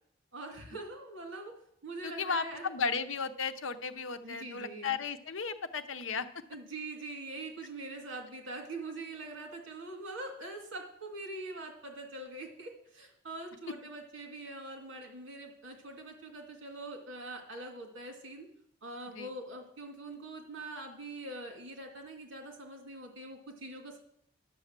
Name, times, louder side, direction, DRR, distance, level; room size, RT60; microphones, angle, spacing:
voice 1, 0.3-1.5 1.8-2.7 4.2-5.0 6.5-18.5 18.8-24.0, right 2 dB, 70° right, 2 dB, 2.5 m, -43 dB
voice 2, 2.0-6.3 19.2-19.3, left 5 dB, 75° left, 9 dB, 0.7 m, -35 dB
11.0 x 7.0 x 7.4 m, 0.71 s
head